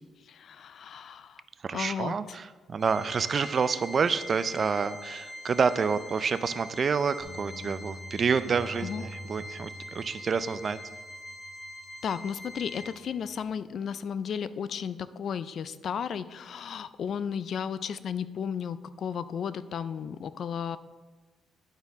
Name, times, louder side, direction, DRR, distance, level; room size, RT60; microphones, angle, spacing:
voice 1, 0.3-1.4 1.7-2.1 8.8-9.0 12.0-20.8, left 7 dB, 60° left, 15 dB, 0.3 m, -34 dB
voice 2, 1.6-10.8, right 5 dB, 45° right, 13 dB, 0.4 m, -28 dB
Organ, 2.8-13.4, equal, 25° left, 1.0 m, -44 dB
Bass guitar, 7.2-11.7 12.3-13.4, left 2 dB, 20° right, 1.7 m, -50 dB
Bowed string instrument, 8.4-11.5 12.0-12.1, equal, 80° right, 0.9 m, -46 dB
11.0 x 4.4 x 3.5 m, 1.3 s
cardioid pair, 90°, 0 cm